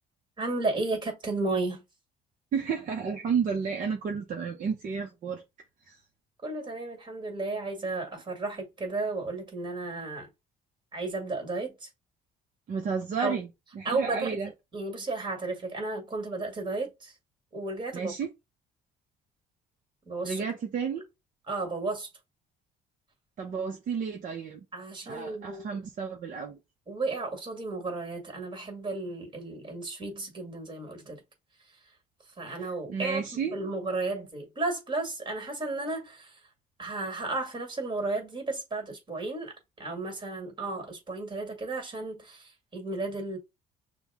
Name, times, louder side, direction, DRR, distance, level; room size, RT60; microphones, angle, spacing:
voice 1, 0.4-1.8 6.4-10.3 10.9-11.9 13.2-13.3 13.8-14.4 14.7-17.1 17.5-18.1 20.1-20.4 21.5-22.1 24.7-25.8 26.9-31.2 32.4-36.4 36.8-43.4, right 3 dB, 25° right, 1.9 m, -33 dB
voice 2, 2.5-5.4 5.9-6.0 12.7-13.5 13.8-14.5 17.9-18.3 20.2-21.1 23.4-24.6 25.1-26.6 32.5-33.6, right 6 dB, 50° right, 0.8 m, -32 dB
6.1 x 2.3 x 3.6 m
cardioid pair, 110°, 17 cm